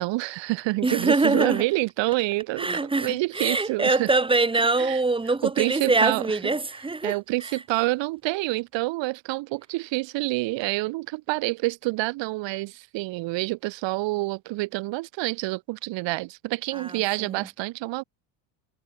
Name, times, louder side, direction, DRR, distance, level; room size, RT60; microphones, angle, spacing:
voice 1, 0.0-4.1 4.8-5.0 5.4-6.4 7.0-18.0, right 21 dB, 65° right, 4.8 m, -27 dB
voice 2, 0.8-1.7 2.6-7.1 7.4-7.6 16.7-17.5, right 3 dB, 10° right, 2.3 m, -24 dB
cardioid pair, 150°, 47 cm